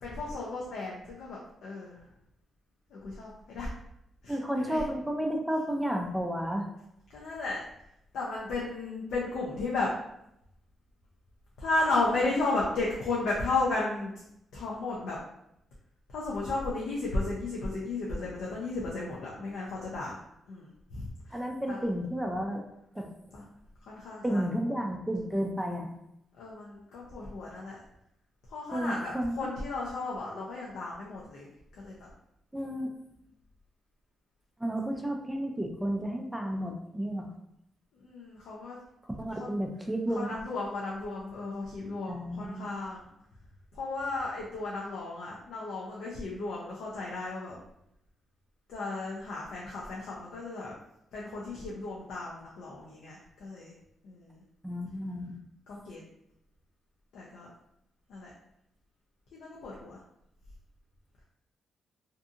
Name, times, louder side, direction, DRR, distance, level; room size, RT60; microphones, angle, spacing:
voice 1, 0.0-2.0 2.9-3.7 4.2-4.8 7.1-7.6 8.1-9.9 11.6-14.1 14.5-15.2 16.1-20.2 20.5-21.4 21.7-21.8 23.3-23.5 23.8-24.4 26.4-27.8 28.5-31.5 31.8-32.1 38.0-38.8 39.4-39.6 40.1-43.1 43.7-47.6 48.7-50.7 51.1-53.7 54.0-54.4 55.7-56.0 57.1-57.5 58.1-58.3 59.3-60.0, left 3 dB, 85° left, -5 dB, 0.5 m, -34 dB
voice 2, 4.3-6.7 12.2-12.4 21.3-22.6 23.0-23.1 24.2-25.9 28.7-29.3 32.5-32.9 34.6-37.3 39.2-40.4 42.1-42.7 54.6-55.4, equal, 5° right, 2 dB, 0.3 m, -32 dB
2.6 x 2.6 x 2.4 m, 0.80 s
cardioid pair, 130°, 0 cm